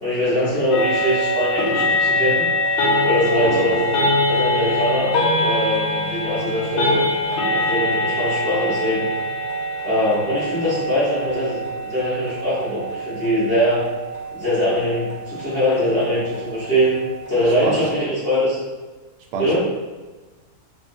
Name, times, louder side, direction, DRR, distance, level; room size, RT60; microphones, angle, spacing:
voice 1, 0.0-3.9 4.3-5.1 5.4-7.0 7.5-9.1 9.8-13.8 14.3-17.0 17.3-18.6 19.4-19.6, equal, 40° left, -11 dB, 0.9 m, -22 dB
sound 1, 0.7-18.0, left 1 dB, 75° left, 1.4 m, -24 dB
voice 2, 3.4-3.7 17.6-17.9 19.3-19.6, right 4 dB, 90° right, 1 dB, 1.5 m, -26 dB
3.9 x 3.2 x 2.6 m, 1.2 s
omnidirectional pair, 2.4 m